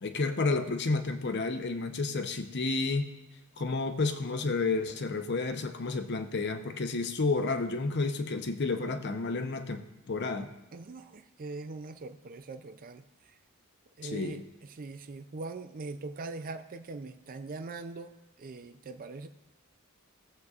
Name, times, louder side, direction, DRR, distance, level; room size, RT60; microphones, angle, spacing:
voice 1, 0.0-3.1 3.6-9.8 10.1-10.5 14.0-14.4, left 3 dB, 50° left, 7 dB, 0.7 m, -31 dB
voice 2, 10.7-13.0 14.0-14.4 14.7-18.1 18.4-19.3, right 3 dB, 40° right, 9 dB, 0.4 m, -41 dB
17.5 x 7.9 x 2.4 m, 1.0 s
head